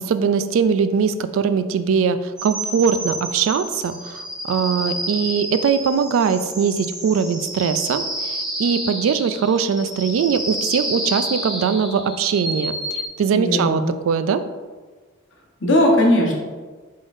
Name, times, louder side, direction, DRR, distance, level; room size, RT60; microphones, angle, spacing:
voice 1, 0.0-14.4, right 6 dB, 80° right, 12 dB, 0.3 m, -21 dB
sound 1, 2.4-13.1, right 1 dB, 5° right, 0.7 m, -29 dB
voice 2, 13.3-13.9 15.6-16.3, left 1 dB, 65° left, -1 dB, 0.9 m, -17 dB
5.1 x 3.8 x 2.5 m, 1.4 s
head